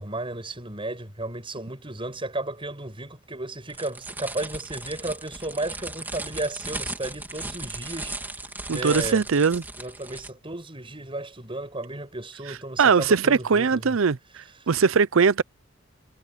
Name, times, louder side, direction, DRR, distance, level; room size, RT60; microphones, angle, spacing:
voice 1, 0.0-8.1 8.7-9.2 9.8-14.0, right 2 dB, 25° right, 6.6 m, -34 dB
sound 1, 3.7-10.3, right 2 dB, 10° right, 3.0 m, -36 dB
voice 2, 8.7-9.6 12.8-14.2 14.7-15.4, right 5 dB, 75° right, 0.6 m, -20 dB
head